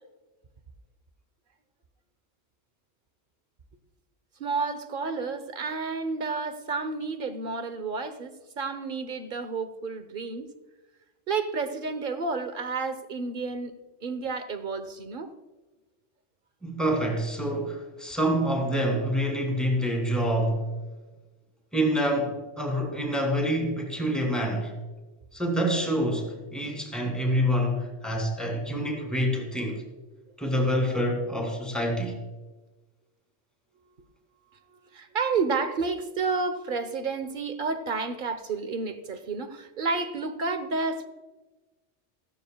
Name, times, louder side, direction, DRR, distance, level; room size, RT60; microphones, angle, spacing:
voice 1, 4.4-10.5 11.3-13.7 14.0-15.3 34.9-41.1, right 4 dB, 50° right, 10 dB, 1.1 m, -30 dB
voice 2, 16.6-20.6 21.7-24.8 25.3-29.8 30.4-32.2, equal, ahead, 1 dB, 2.7 m, -27 dB
17.5 x 14.5 x 2.3 m, 1.2 s
omnidirectional pair, 1.2 m